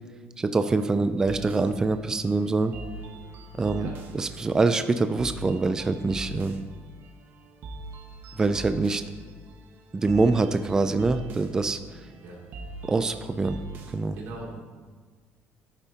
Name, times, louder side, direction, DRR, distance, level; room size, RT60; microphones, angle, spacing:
voice 1, 0.4-2.7 3.6-3.9 4.1-6.6 8.4-9.0 9.9-11.8 12.9-13.6 13.9-14.2, right 3 dB, 15° right, 9 dB, 0.3 m, -24 dB
sound 1, 1.2-14.1, right 2 dB, 45° right, 1.1 m, -42 dB
voice 2, 14.1-14.6, right 2 dB, 75° right, -3 dB, 2.7 m, -39 dB
11.5 x 10.0 x 2.8 m, 1.5 s
cardioid pair, 175°, 5 cm